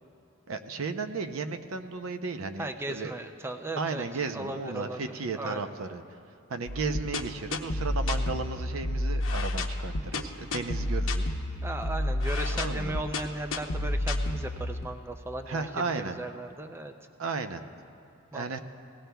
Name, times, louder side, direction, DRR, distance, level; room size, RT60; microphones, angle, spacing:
voice 1, 0.5-3.1 3.8-6.0 6.5-11.7 12.5-13.0 15.5-16.2 17.2-17.6 18.3-18.6, right 4 dB, 75° right, 8 dB, 0.6 m, -34 dB
voice 2, 2.6-4.0 4.3-5.7 11.6-16.9 18.3-18.5, right 1 dB, 10° right, 6 dB, 0.4 m, -37 dB
sound 1, 6.7-14.9, left 1 dB, 75° left, 0.8 m, -30 dB
18.5 x 16.5 x 2.3 m, 2.8 s
head